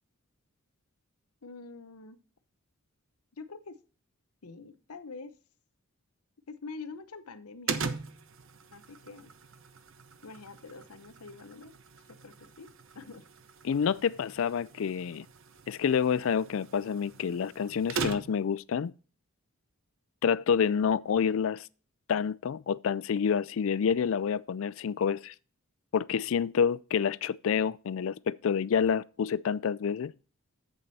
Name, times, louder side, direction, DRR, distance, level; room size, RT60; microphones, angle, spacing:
voice 1, 1.4-2.2 3.3-3.8 4.4-5.4 6.5-7.9 8.7-9.3 10.2-11.7 12.1-13.3, left 4 dB, 85° left, 0.8 m, -46 dB
sound 1, 7.7-18.6, right 5 dB, 60° right, 0.8 m, -41 dB
voice 2, 13.6-15.3 15.7-18.9 20.2-21.7 22.1-25.3 25.9-30.1, left 7 dB, 65° left, 0.3 m, -28 dB
8.0 x 7.5 x 4.1 m
head